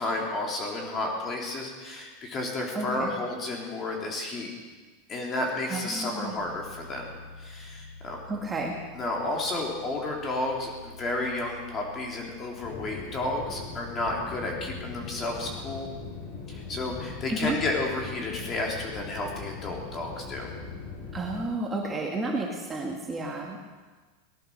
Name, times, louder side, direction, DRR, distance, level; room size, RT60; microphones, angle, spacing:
voice 1, 0.0-4.5 5.1-7.1 7.4-8.2 8.9-15.9 16.5-20.5, left 2 dB, 25° left, 0 dB, 3.6 m, -32 dB
voice 2, 2.7-3.1 5.7-6.3 8.3-8.7 17.3-17.6 21.1-23.7, right 2 dB, 15° right, -1 dB, 1.8 m, -31 dB
sound 1, 6.4-19.2, left 3 dB, 65° left, 4.8 m, -49 dB
sound 2, 12.6-21.4, left 5 dB, 50° left, 6.3 m, -40 dB
19.0 x 11.0 x 6.6 m, 1.4 s
supercardioid pair, 150°, 0 cm